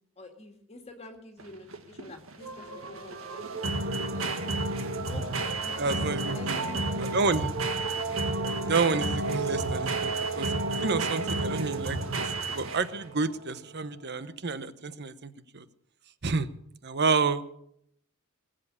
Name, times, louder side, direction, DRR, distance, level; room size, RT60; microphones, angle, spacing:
voice 1, 0.2-4.3 5.0-7.2, left 2 dB, 30° left, 3 dB, 2.1 m, -47 dB
sound 1, 1.4-13.0, right 2 dB, 90° right, 1.8 m, -32 dB
sound 2, 2.4-14.2, right 4 dB, 70° right, 1.8 m, -36 dB
voice 2, 5.8-6.6 7.1-7.5 8.6-10.5 10.8-12.2 12.5-15.6 16.2-16.5 16.8-17.4, right 4 dB, 55° right, 13 dB, 1.0 m, -29 dB
21.0 x 7.8 x 8.6 m, 0.74 s
head